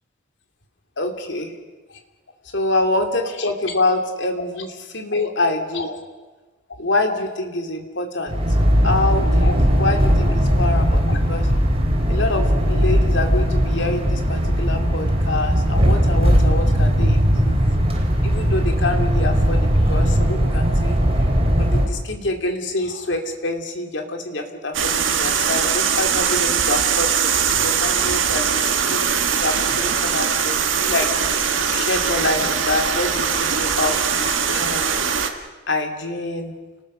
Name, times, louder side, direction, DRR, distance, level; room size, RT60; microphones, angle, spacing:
voice 1, 1.0-1.5 2.5-6.0 6.8-8.4 8.8-11.5 12.1-17.6 18.2-21.0 21.6-34.9 35.7-36.6, left 2 dB, 65° left, 4 dB, 2.6 m, -26 dB
sound 1, 8.3-21.9, equal, 30° right, 3.2 m, -18 dB
sound 2, 24.7-35.3, right 7 dB, 80° right, 1.8 m, -21 dB
29.5 x 19.5 x 5.6 m, 1.3 s
head